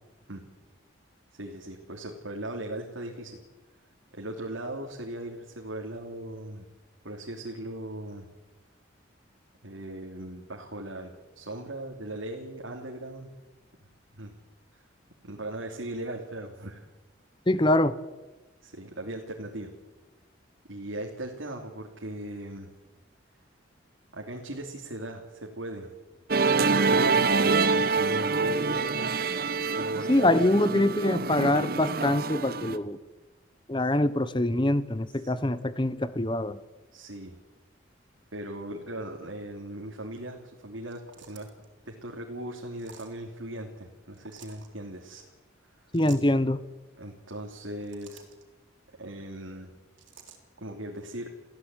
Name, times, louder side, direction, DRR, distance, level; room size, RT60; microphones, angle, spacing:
voice 1, 1.3-3.4 4.1-6.7 7.0-8.3 9.6-13.3 14.2-14.3 14.7-14.8 15.2-16.8 18.6-19.7 20.7-22.7 24.1-25.9 26.4-29.2 29.7-30.9 35.1-35.3 36.9-37.4 38.3-41.0 41.3-41.5 41.8-45.3 45.6-45.7 47.0-48.2 49.0-49.7 50.6-51.3, right 1 dB, 90° right, 0 dB, 3.0 m, -38 dB
voice 2, 17.5-18.0 30.1-33.0 33.7-36.6 45.9-46.6, left 1 dB, 25° left, 15 dB, 0.9 m, -24 dB
Musical instrument, 26.3-32.8, right 4 dB, 50° right, 1.2 m, -26 dB
sound 1, 40.8-41.7 42.8-43.2 44.1-44.7 45.9-46.3 47.6-48.4 50.0-50.4, right 7 dB, 75° right, 4.1 m, -51 dB
28.5 x 16.0 x 9.1 m, 1.2 s
head